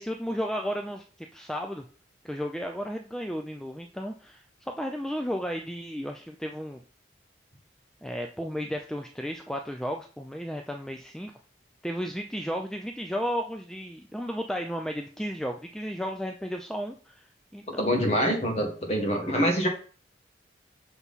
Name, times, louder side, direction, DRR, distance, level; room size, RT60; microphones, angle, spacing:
voice 1, 0.0-1.8 2.2-6.8 8.0-11.3 11.8-17.3 17.5-18.1 19.2-19.3, equal, 5° left, 3 dB, 0.4 m, -34 dB
voice 2, 17.8-19.7, equal, 35° left, 2 dB, 1.6 m, -25 dB
5.9 x 5.6 x 4.1 m, 0.41 s
head